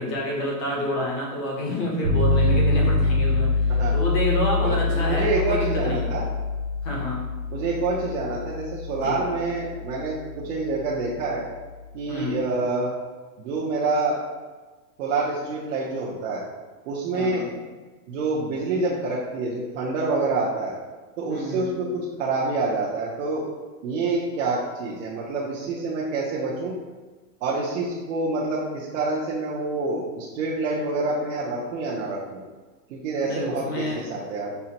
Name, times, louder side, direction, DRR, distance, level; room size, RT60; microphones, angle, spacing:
voice 1, 0.0-6.1 6.8-7.2 9.0-9.2 12.1-12.4 17.1-17.5 21.3-21.7 33.2-34.0, left 1 dB, 25° left, -2 dB, 0.8 m, -28 dB
sound 1, 2.0-11.9, left 3 dB, 20° right, 0.4 m, -25 dB
voice 2, 4.6-6.2 7.5-11.5 11.9-12.9 13.4-14.2 15.0-16.4 16.9-17.5 18.1-20.8 21.2-23.5 23.8-26.7 27.4-32.4 32.9-34.5, right 3 dB, 50° right, -6 dB, 0.7 m, -27 dB
5.5 x 2.1 x 2.8 m, 1.3 s
supercardioid pair, 155°, 49 cm